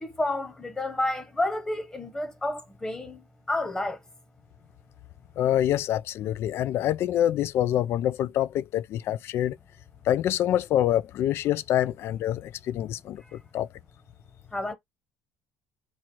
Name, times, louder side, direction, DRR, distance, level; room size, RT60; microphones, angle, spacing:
voice 1, 0.0-3.2 3.5-4.0 14.5-14.7, left 2 dB, 15° left, 1.2 m, -30 dB
voice 2, 5.4-9.6 10.1-13.7, left 11 dB, 55° left, 0.4 m, -26 dB
4.4 x 2.5 x 4.5 m
cardioid pair, 115°, 5 cm